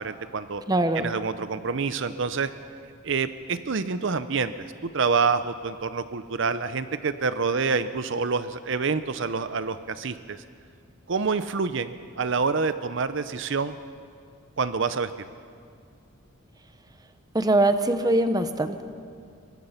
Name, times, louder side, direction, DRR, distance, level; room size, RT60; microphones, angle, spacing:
voice 1, 0.0-0.6 1.0-2.5 3.0-4.5 4.8-10.4 11.1-13.8 14.6-15.1, right 5 dB, 60° right, 12 dB, 0.6 m, -27 dB
voice 2, 0.7-1.1 17.3-18.8, right 2 dB, 20° right, 9 dB, 0.8 m, -22 dB
23.0 x 21.0 x 5.8 m, 2.3 s
head